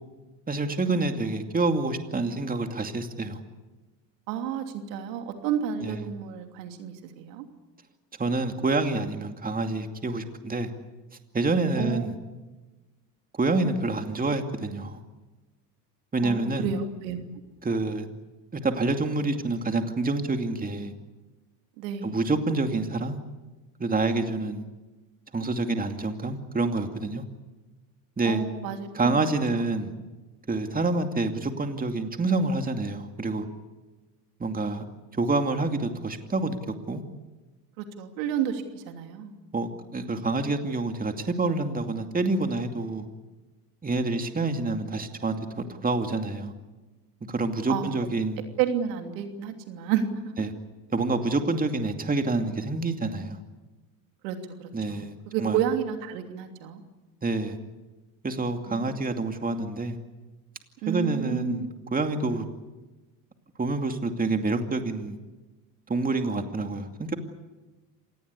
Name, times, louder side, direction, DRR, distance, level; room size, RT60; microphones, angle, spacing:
voice 1, 0.5-3.4 5.8-6.0 8.2-10.7 11.3-12.1 13.4-15.0 16.1-16.7 17.6-18.1 18.5-20.9 22.0-23.2 23.8-24.6 25.3-27.2 28.2-28.4 28.9-29.9 30.5-33.5 34.4-34.8 35.1-37.0 39.5-43.1 43.8-46.5 47.3-48.4 50.4-50.5 50.9-53.4 54.7-55.1 55.4-55.6 57.2-57.6 58.2-60.0 60.9-62.5 63.6-65.2 65.9-67.1, right 3 dB, 15° right, 6 dB, 2.5 m, -27 dB
voice 2, 4.3-7.4 11.8-12.1 16.2-17.2 21.8-22.2 28.2-29.6 37.8-39.3 47.7-47.9 48.6-50.1 54.2-56.8 58.7-58.9 60.8-61.7, right 9 dB, 80° right, 5 dB, 3.1 m, -31 dB
27.0 x 19.0 x 8.4 m, 1.2 s
supercardioid pair, 95°, 49 cm